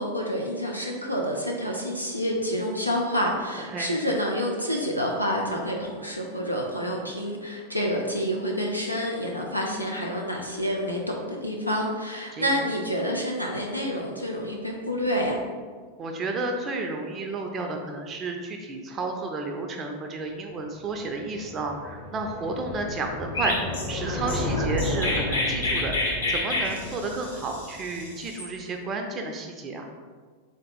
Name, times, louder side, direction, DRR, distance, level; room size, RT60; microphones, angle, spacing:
voice 1, 0.0-15.4, equal, 90° left, -1 dB, 0.4 m, -28 dB
voice 2, 16.0-29.9, right 3 dB, 25° right, 3 dB, 0.4 m, -32 dB
sound 1, 20.7-28.1, left 1 dB, 30° left, 0.8 m, -33 dB
Chirp tweet, 23.3-28.5, left 2 dB, 75° left, 1.0 m, -29 dB
3.4 x 2.7 x 3.8 m, 1.6 s
figure-of-eight pair, 90°, 0 cm